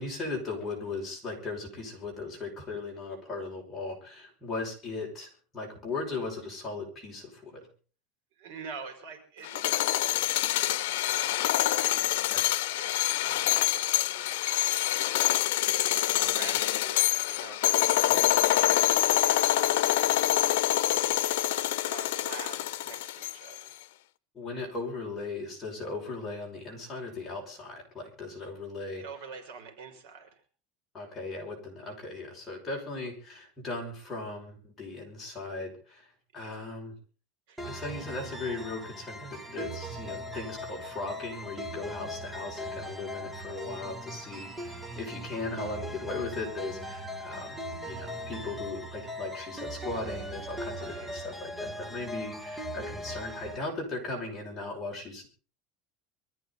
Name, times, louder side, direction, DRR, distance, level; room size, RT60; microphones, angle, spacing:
voice 1, 0.0-5.3 5.5-7.6 12.3-12.4 18.1-18.2 24.3-29.0 30.9-36.1 36.3-36.9 37.6-47.6 47.8-55.3, left 3 dB, 15° left, -2 dB, 5.8 m, -37 dB
voice 2, 8.4-10.3 10.7-14.7 15.7-18.3 19.0-20.6 20.9-23.7 29.0-30.4 36.4-36.7 37.5-37.8 50.7-51.1, right 5 dB, 65° right, 6 dB, 5.5 m, -47 dB
sound 1, 9.4-23.6, left 15 dB, 85° left, 0.7 m, -26 dB
sound 2, 37.6-53.6, equal, 5° right, 1.2 m, -39 dB
24.0 x 14.0 x 4.0 m, 0.40 s
supercardioid pair, 175°, 0 cm